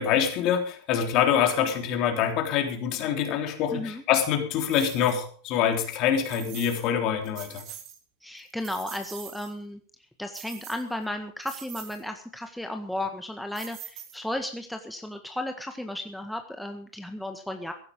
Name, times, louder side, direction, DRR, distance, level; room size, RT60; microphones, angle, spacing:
voice 1, 0.0-7.6, left 8 dB, 50° left, 5 dB, 3.4 m, -25 dB
voice 2, 3.7-4.0 8.2-9.8 10.2-17.7, left 1 dB, 5° left, 5 dB, 1.6 m, -34 dB
sound 1, 4.7-5.2 6.3-6.9 7.2-8.0 8.4-9.5 10.3-11.0 11.4-12.0 13.5-14.4, right 10 dB, 50° right, 3.1 m, -43 dB
15.5 x 12.0 x 5.2 m, 0.43 s
hypercardioid pair, 90°, 0 cm